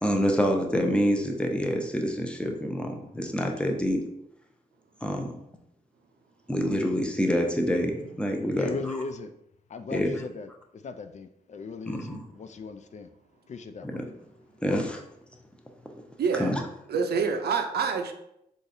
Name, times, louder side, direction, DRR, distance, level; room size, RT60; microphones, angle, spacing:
voice 1, 0.0-4.0 5.0-5.3 6.5-9.0 9.9-10.2 11.9-12.2 13.8-14.0 14.6-15.0 16.4-16.6, equal, 5° left, 2 dB, 0.7 m, -27 dB
voice 2, 8.6-9.3 9.7-13.1 13.5-14.1 14.6-14.9, left 4 dB, 45° left, 10 dB, 0.4 m, -38 dB
voice 3, 16.2-16.6 16.9-18.1, right 5 dB, 65° right, 5 dB, 0.5 m, -26 dB
3.9 x 2.5 x 2.6 m, 0.77 s
supercardioid pair, 40°, 18 cm